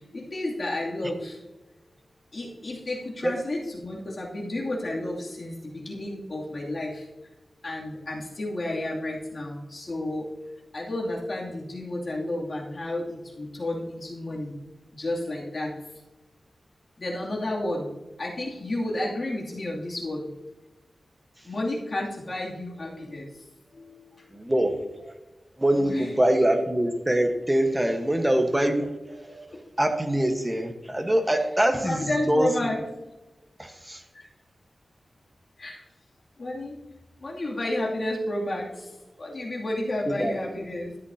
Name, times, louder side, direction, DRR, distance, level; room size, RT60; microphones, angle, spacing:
voice 1, 0.1-1.4 2.3-7.1 7.6-10.3 10.7-14.5 14.9-15.7 17.0-17.9 18.2-20.3 21.4-23.3 23.7-24.3 25.7-26.1 27.8-28.0 29.5-29.6 31.8-32.8 34.1-34.3 35.6-35.8 36.4-36.8 37.2-41.0, left 1 dB, 50° left, -3 dB, 2.5 m, -31 dB
voice 2, 24.3-24.8 25.0-25.1 25.6-29.4 29.8-32.5 33.6-34.0 40.1-40.3, right 1 dB, 15° right, 5 dB, 1.2 m, -24 dB
13.0 x 8.2 x 2.8 m, 1.1 s
wide cardioid pair, 110°, 0 cm